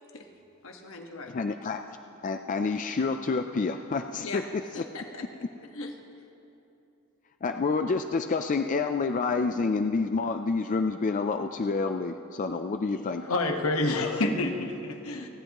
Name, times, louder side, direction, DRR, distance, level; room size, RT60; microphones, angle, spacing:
voice 1, 0.6-1.5 4.2-4.4 4.7-5.3 5.6-5.9, left 3 dB, 65° left, 3 dB, 1.4 m, -40 dB
voice 2, 1.3-1.8 2.2-4.8 7.4-13.2, left 4 dB, 35° left, 7 dB, 0.4 m, -28 dB
voice 3, 13.2-15.3, left 2 dB, 85° left, 3 dB, 1.3 m, -28 dB
30.0 x 10.5 x 3.0 m, 2.9 s
head